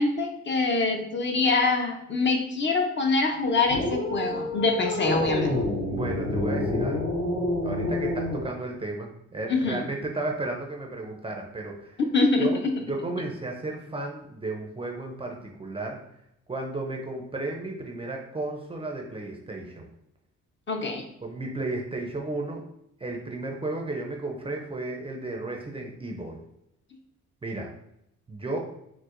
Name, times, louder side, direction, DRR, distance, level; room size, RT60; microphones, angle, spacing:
voice 1, 0.0-5.6 9.5-9.8 12.1-12.7 20.7-21.0, left 3 dB, 40° left, 3 dB, 0.6 m, -24 dB
sound 1, 3.7-8.5, left 1 dB, 80° left, 1.1 m, -28 dB
voice 2, 5.9-7.1 7.6-12.0 12.4-12.6 12.9-16.0 16.5-19.9 21.2-22.6 23.0-26.4 27.4-27.7 28.3-28.6, right 2 dB, 20° right, 1 dB, 0.4 m, -33 dB
4.5 x 2.0 x 2.5 m, 0.80 s
cardioid pair, 90°, 30 cm